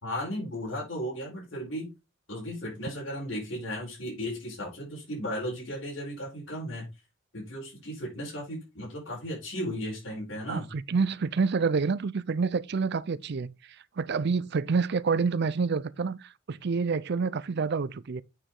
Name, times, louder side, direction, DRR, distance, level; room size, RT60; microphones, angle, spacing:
voice 1, 0.0-1.9 2.3-6.8 7.3-10.7, equal, 70° left, 4.7 m, -35 dB
voice 2, 10.5-18.2, right 5 dB, 55° right, 0.5 m, -28 dB
8.7 x 5.0 x 3.8 m
head